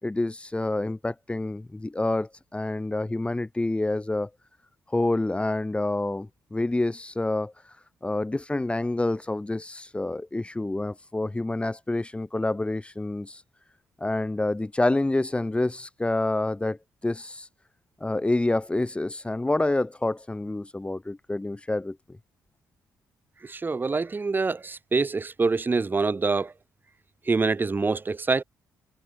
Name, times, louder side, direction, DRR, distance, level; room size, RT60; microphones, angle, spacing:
voice 1, 0.0-4.3 4.9-7.5 8.0-13.4 14.0-16.8 17.0-17.5 18.0-22.0, left 2 dB, 15° left, 3.1 m, -27 dB
voice 2, 23.4-26.5 27.3-28.4, right 4 dB, 30° right, 1.2 m, -25 dB
supercardioid pair, 65°, 7 cm